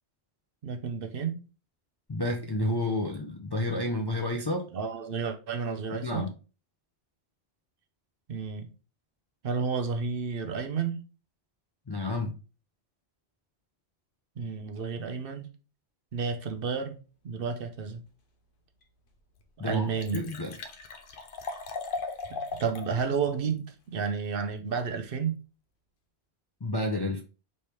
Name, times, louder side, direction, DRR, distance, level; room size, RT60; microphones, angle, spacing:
voice 1, 0.6-1.4 4.7-6.2 8.3-8.7 9.4-11.0 14.4-15.5 16.1-18.0 19.6-20.2 22.3-25.4, right 5 dB, 60° right, 0.8 m, -31 dB
voice 2, 2.1-4.7 5.9-6.3 11.9-12.4 19.6-20.5 26.6-27.2, left 1 dB, 40° left, 0.4 m, -30 dB
Liquid, 18.8-18.9 19.4-19.5 19.7-22.9 23.3-23.4, left 4 dB, 60° left, 0.7 m, -38 dB
3.3 x 3.2 x 4.2 m
omnidirectional pair, 1.1 m